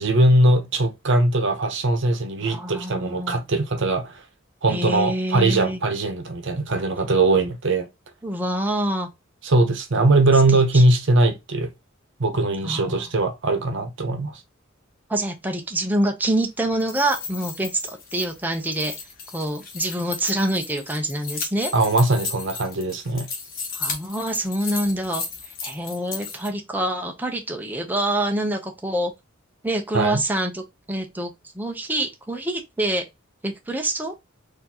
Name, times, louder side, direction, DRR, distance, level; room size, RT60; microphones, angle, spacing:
voice 1, 0.0-4.2 4.6-7.9 9.4-11.7 12.2-14.4 21.7-23.3 29.9-30.2, right 2 dB, 65° right, 0.8 m, -20 dB
voice 2, 2.4-3.4 4.7-5.8 8.2-9.1 10.7-10.8 12.6-13.1 15.1-18.9 19.3-21.7 23.7-25.2 25.6-29.1 29.6-30.6 30.9-33.0 33.4-34.1, right 1 dB, 10° right, 0.6 m, -26 dB
sound 1, 16.7-26.5, left 5 dB, 45° left, 1.1 m, -35 dB
4.2 x 2.7 x 2.8 m
head